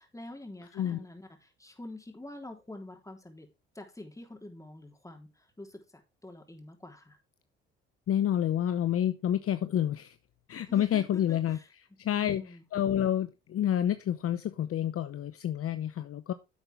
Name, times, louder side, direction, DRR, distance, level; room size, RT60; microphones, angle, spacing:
voice 1, 0.0-3.5 3.8-5.8 6.2-7.2 10.7-11.7 12.1-12.6, left 1 dB, 10° left, 2 dB, 3.5 m, -46 dB
voice 2, 8.1-10.1 10.5-11.6 12.0-16.3, left 10 dB, 50° left, 11 dB, 0.8 m, -29 dB
10.5 x 7.9 x 3.4 m, 0.26 s
hypercardioid pair, 60°, 30 cm